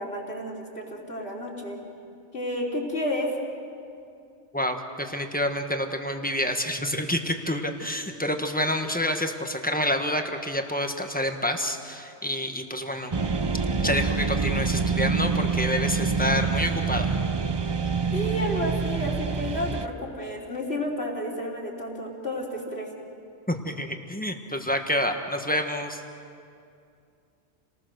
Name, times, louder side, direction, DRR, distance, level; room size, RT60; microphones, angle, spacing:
voice 1, 0.0-1.8 2.3-3.3 18.1-22.9, left 1 dB, 60° left, -2 dB, 3.5 m, -31 dB
voice 2, 4.5-13.1 13.8-17.2 23.5-26.0, left 1 dB, 5° left, 4 dB, 1.3 m, -28 dB
sound 1, 13.1-19.9, right 5 dB, 30° right, 0.5 m, -26 dB
29.5 x 19.5 x 6.4 m, 2.5 s
omnidirectional pair, 1.2 m